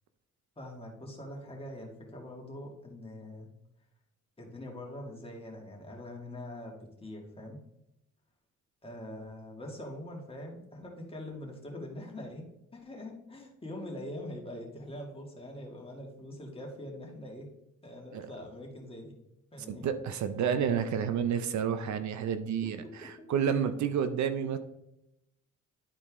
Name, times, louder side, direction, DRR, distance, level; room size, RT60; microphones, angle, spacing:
voice 1, 0.6-3.5 4.4-7.6 8.8-17.5 17.8-19.1 19.5-19.9 22.6-23.3, left 1 dB, 20° left, -1 dB, 2.3 m, -43 dB
voice 2, 19.7-24.6, right 8 dB, 70° right, 10 dB, 0.7 m, -30 dB
11.5 x 4.2 x 3.7 m, 0.84 s
cardioid pair, 90°, 30 cm